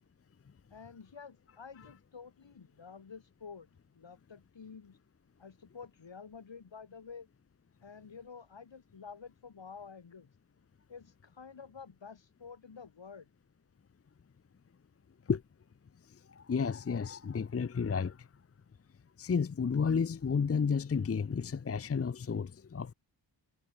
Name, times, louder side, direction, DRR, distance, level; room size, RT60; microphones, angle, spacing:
voice 1, 0.7-5.0 5.4-7.3 7.8-10.3 10.9-13.3, left 5 dB, 75° left, 5.6 m, -50 dB
voice 2, 16.3-18.3 19.2-22.9, left 6 dB, 30° left, 0.6 m, -32 dB
wide cardioid pair, 115°, 45 cm